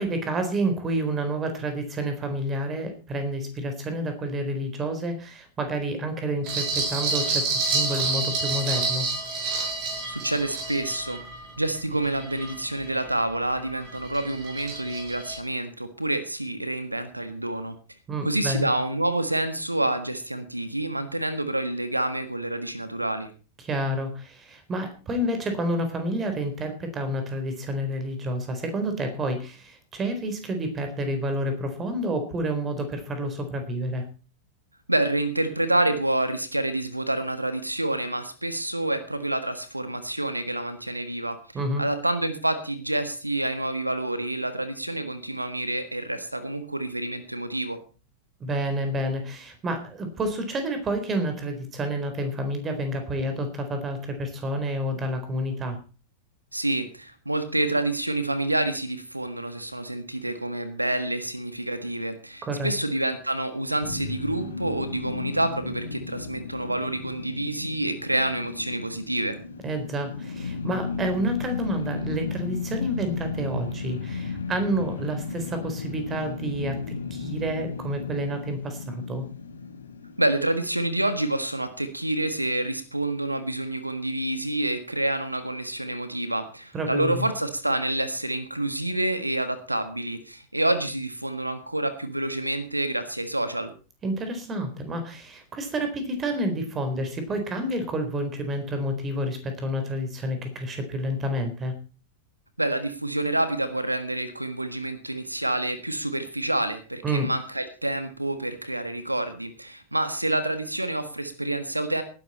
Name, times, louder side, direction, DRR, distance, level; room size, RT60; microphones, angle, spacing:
voice 1, 0.0-9.1 18.1-18.7 23.6-34.1 41.5-41.9 48.4-55.8 62.4-62.7 69.6-76.8 77.1-79.2 86.7-87.3 94.0-101.7 107.0-107.3, right 1 dB, 25° right, 7 dB, 4.2 m, -29 dB
sound 1, 6.4-13.1 13.6-15.4, right 3 dB, 45° right, 7.7 m, -29 dB
voice 2, 10.1-11.2 11.6-17.8 18.2-23.3 34.9-41.4 41.8-47.8 56.5-69.4 80.2-93.7 102.6-112.0, right 1 dB, 85° right, 11 dB, 1.5 m, -28 dB
sound 2, 63.8-81.0, left 5 dB, 75° left, 2.1 m, -34 dB
18.5 x 11.0 x 4.3 m, 0.36 s
figure-of-eight pair, 90°, 0 cm